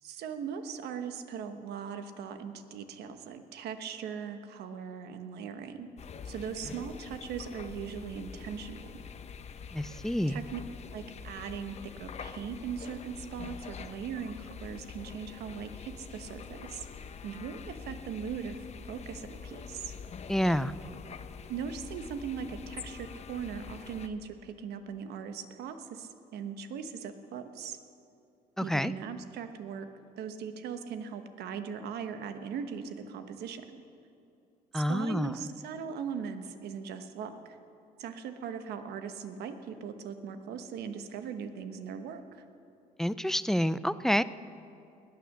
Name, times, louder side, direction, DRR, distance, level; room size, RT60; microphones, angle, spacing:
voice 1, 0.0-5.9 6.2-8.9 10.3-10.6 10.9-16.9 17.2-19.9 21.5-27.8 28.6-29.9 30.2-33.8 34.7-37.6 38.0-42.4, right 7 dB, 75° right, 8 dB, 1.2 m, -39 dB
sound 1, 6.0-24.1, left 6 dB, 40° left, 0.8 m, -45 dB
voice 2, 9.7-10.4 20.3-20.7 28.6-28.9 34.7-35.3 43.0-44.2, equal, ahead, 15 dB, 0.3 m, -28 dB
19.5 x 9.3 x 6.6 m, 2.7 s
cardioid pair, 110°, 17 cm